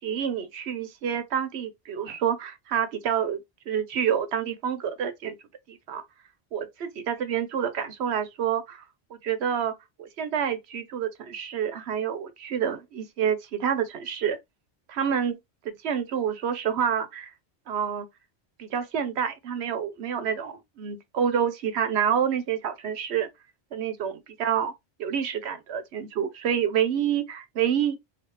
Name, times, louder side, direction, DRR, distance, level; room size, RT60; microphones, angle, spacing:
voice 1, 0.0-3.4 3.7-5.4 5.7-6.0 6.5-8.8 9.1-9.7 10.0-14.4 14.9-15.4 15.6-17.3 17.7-18.1 18.6-23.3 23.7-24.7 25.0-28.0, right 8 dB, 75° right, 1.0 m, -28 dB
3.3 x 2.8 x 3.1 m
omnidirectional pair, 1.1 m